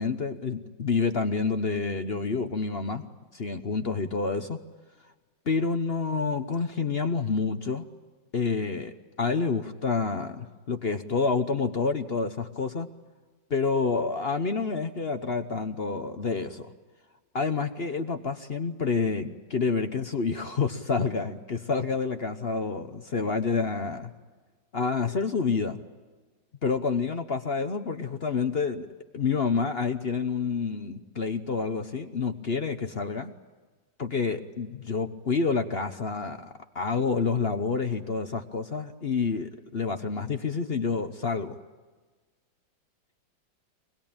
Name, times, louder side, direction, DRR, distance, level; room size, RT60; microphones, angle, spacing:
voice 1, 0.0-3.0 3.3-4.6 5.5-7.9 8.3-12.9 13.5-16.7 17.3-24.1 24.7-25.8 26.6-28.9 29.1-33.3 34.0-41.6, left 4 dB, 40° left, 8 dB, 0.9 m, -28 dB
24.5 x 20.5 x 8.8 m, 1.4 s
omnidirectional pair, 2.1 m